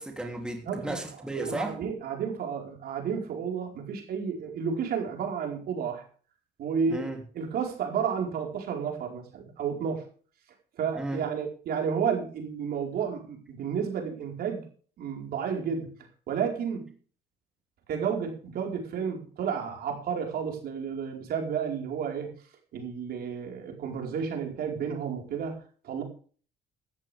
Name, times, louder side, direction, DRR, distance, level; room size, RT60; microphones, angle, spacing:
voice 1, 0.0-1.8 6.9-7.2 10.9-11.2, right 2 dB, 5° right, 2 dB, 3.3 m, -34 dB
voice 2, 0.6-1.0 1.4-6.0 6.6-7.1 7.3-10.1 10.8-14.7 15.0-15.9 16.3-16.9 17.9-22.3 22.7-26.0, right 7 dB, 65° right, 2 dB, 4.9 m, -31 dB
16.0 x 13.5 x 3.6 m, 0.42 s
cardioid pair, 110°, 17 cm